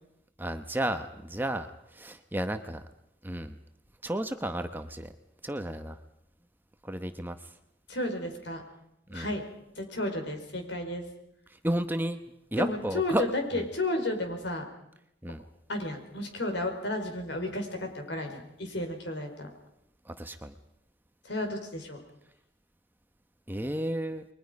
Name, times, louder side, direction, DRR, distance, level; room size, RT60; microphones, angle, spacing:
voice 1, 0.4-2.8 3.2-3.6 4.0-5.1 5.4-6.0 6.8-7.5 9.1-9.3 11.5-12.2 12.5-13.2 13.5-13.6 15.2-15.4 20.0-20.5 23.5-24.3, right 1 dB, 10° right, 8 dB, 0.9 m, -33 dB
voice 2, 7.9-8.6 9.1-9.4 9.8-11.0 12.6-14.6 15.7-19.5 21.2-22.0, left 1 dB, 65° left, 4 dB, 5.0 m, -32 dB
30.0 x 23.0 x 5.3 m, 0.82 s
head